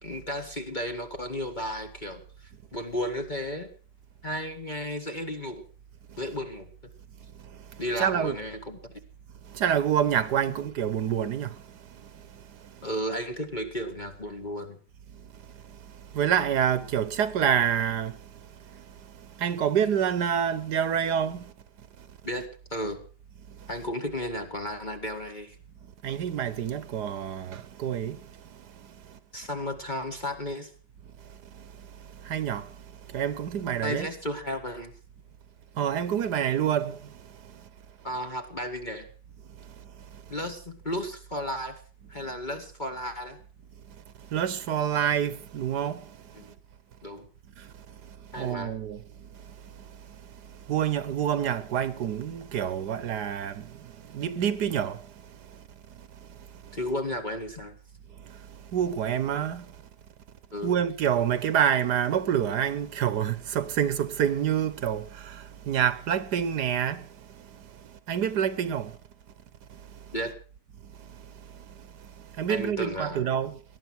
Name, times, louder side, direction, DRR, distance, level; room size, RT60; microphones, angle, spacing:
voice 1, 0.0-3.7 4.2-5.6 6.2-6.7 7.8-8.9 12.8-14.8 22.2-23.0 23.7-25.6 29.3-30.7 33.8-34.9 38.0-39.1 40.3-41.8 42.1-43.4 46.3-46.5 47.0-47.3 48.3-48.7 56.7-57.8 60.5-60.8 70.1-70.3 72.5-73.3, equal, 25° left, 1.8 m, -34 dB
voice 2, 8.0-8.4 9.5-11.5 16.1-18.1 19.4-21.4 26.0-28.2 32.3-32.6 33.1-34.1 35.8-37.0 44.3-46.0 48.4-49.0 50.7-53.6 54.1-55.0 58.7-59.6 60.6-65.4 65.7-67.0 68.1-68.9 72.4-73.5, right 9 dB, 75° right, 1.6 m, -27 dB
19.5 x 11.5 x 6.2 m
omnidirectional pair, 1.8 m